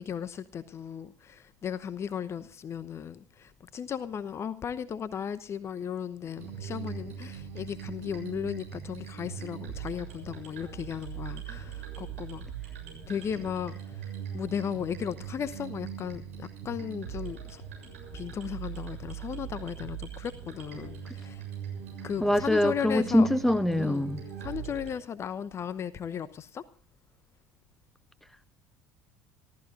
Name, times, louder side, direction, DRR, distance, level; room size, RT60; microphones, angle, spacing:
voice 1, 0.0-12.5 13.1-13.8 14.3-17.6 18.1-21.4 22.0-23.3 23.8-24.1 24.4-26.6, left 8 dB, 35° left, 16 dB, 0.9 m, -36 dB
sound 1, 6.4-25.0, right 8 dB, 80° right, 7.0 m, -41 dB
voice 2, 22.2-24.2, left 1 dB, 5° left, 14 dB, 1.3 m, -24 dB
27.0 x 14.0 x 2.5 m, 0.38 s
figure-of-eight pair, 65°, 7 cm